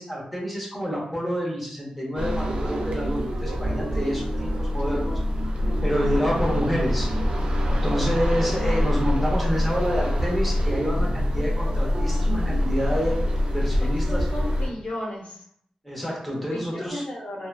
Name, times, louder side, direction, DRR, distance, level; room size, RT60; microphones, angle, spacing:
voice 1, 0.0-5.2 5.8-7.1 7.7-14.3 15.8-17.0, equal, 5° left, -4 dB, 0.8 m, -28 dB
sound 1, 2.2-14.7, equal, 55° right, 0.4 m, -25 dB
voice 2, 13.7-15.4 16.5-17.5, left 1 dB, 90° left, -2 dB, 0.7 m, -35 dB
2.8 x 2.2 x 2.4 m, 0.67 s
wide cardioid pair, 140°, 2 cm